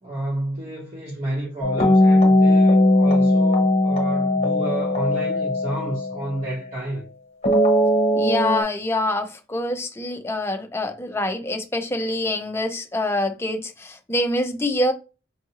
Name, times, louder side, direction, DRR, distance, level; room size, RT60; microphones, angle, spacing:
voice 1, 0.0-7.1, right 1 dB, 35° right, 1.2 m, -30 dB
sound 1, 1.6-6.7 7.4-8.6, left 1 dB, 35° left, 0.9 m, -19 dB
voice 2, 8.1-14.9, left 1 dB, 15° left, 0.5 m, -25 dB
5.3 x 2.5 x 2.9 m
head